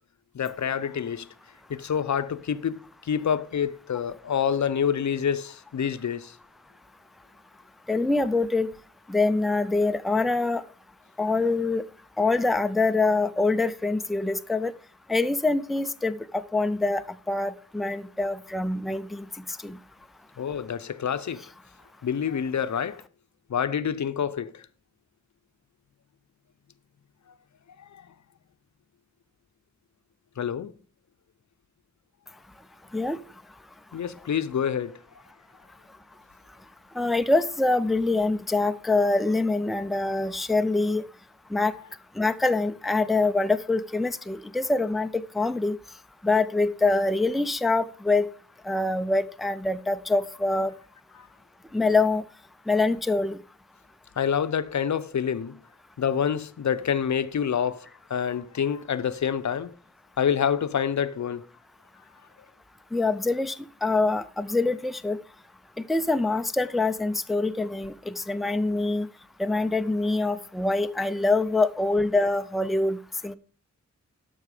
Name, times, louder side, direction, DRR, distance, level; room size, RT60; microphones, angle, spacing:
voice 1, 0.3-1.3 1.7-6.4 20.4-21.4 22.0-23.0 23.5-24.7 27.9-28.1 30.4-30.7 33.9-35.0 51.2-51.3 54.2-55.6 56.0-59.7 60.2-61.5, left 8 dB, 70° left, 0.6 m, -27 dB
voice 2, 7.9-8.7 9.1-10.6 11.2-11.8 12.2-14.7 15.1-19.3 19.6-19.8 32.9-33.2 37.0-41.0 41.5-41.7 42.2-45.8 46.2-48.3 48.7-50.7 51.7-52.2 52.7-53.4 62.9-65.2 65.9-69.1 69.4-73.0 73.2-73.4, left 3 dB, ahead, 0.4 m, -25 dB
12.5 x 5.6 x 4.8 m
wide cardioid pair, 110°, 30 cm